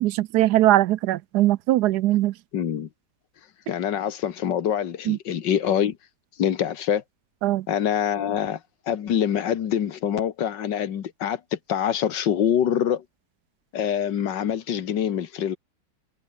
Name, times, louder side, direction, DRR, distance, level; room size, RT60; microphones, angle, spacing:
voice 1, 0.0-2.3 5.1-5.2 7.4-7.7, right 15 dB, 75° right, 1.1 m, -20 dB
voice 2, 2.5-2.9 3.7-6.0 6.4-7.0 7.7-8.6 8.9-13.0 13.7-15.6, left 9 dB, 90° left, 1.9 m, -25 dB
omnidirectional pair, 1.9 m